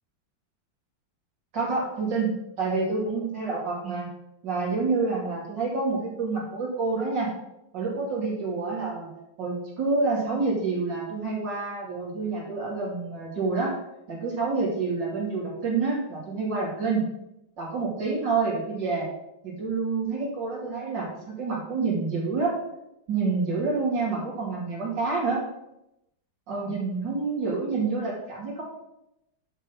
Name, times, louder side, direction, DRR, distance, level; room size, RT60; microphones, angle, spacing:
voice 1, 1.5-4.1 4.4-7.3 7.7-9.1 9.4-13.8 14.1-17.0 17.6-19.1 19.4-22.6 23.1-25.4 26.5-28.6, right 4 dB, 75° right, -5 dB, 3.5 m, -28 dB
10.5 x 3.7 x 5.9 m, 0.86 s
omnidirectional pair, 2.0 m